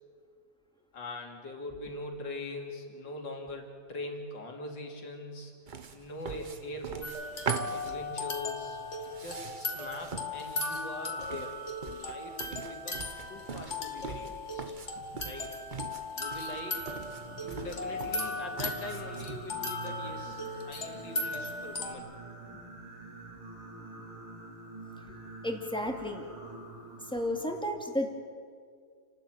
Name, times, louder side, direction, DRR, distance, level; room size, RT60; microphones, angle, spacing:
voice 1, 0.9-5.5 5.9-7.2 7.7-11.5 11.8-13.0 13.3-15.6 16.1-16.9 17.4-22.1, left 2 dB, 55° left, 2 dB, 3.5 m, -42 dB
sound 1, 5.7-19.4, right 5 dB, 85° right, 0.4 m, -42 dB
sound 2, 7.0-21.9, left 2 dB, 30° left, 2.2 m, -37 dB
Singing, 16.9-27.6, right 3 dB, 65° right, 5.3 m, -47 dB
voice 2, 25.4-26.3 27.1-28.1, left 1 dB, ahead, 2 dB, 2.2 m, -32 dB
29.5 x 12.5 x 9.2 m, 2.1 s
omnidirectional pair, 2.4 m